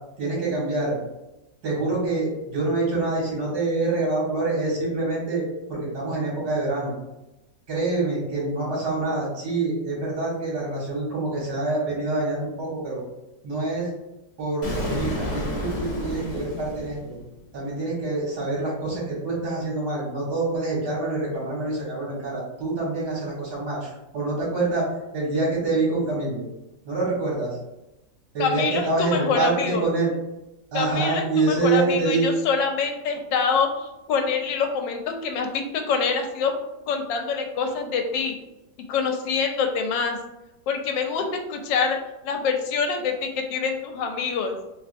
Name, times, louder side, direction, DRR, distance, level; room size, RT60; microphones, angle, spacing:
voice 1, 0.2-0.9 1.6-5.4 5.7-6.9 7.7-13.0 13.4-13.9 14.4-17.1 17.5-24.8 25.1-26.4 26.8-27.5 28.3-30.1 30.7-32.3, right 3 dB, 60° right, -6 dB, 1.7 m, -26 dB
Explosion, 14.6-17.5, left 1 dB, 45° left, 0.5 m, -30 dB
voice 2, 28.4-29.8 30.7-33.7 34.1-36.5 36.9-38.4 38.9-40.2 40.7-41.2 41.5-42.0 42.2-44.6, left 5 dB, 85° left, 4 dB, 1.3 m, -25 dB
3.3 x 3.3 x 2.5 m, 0.96 s
omnidirectional pair, 2.0 m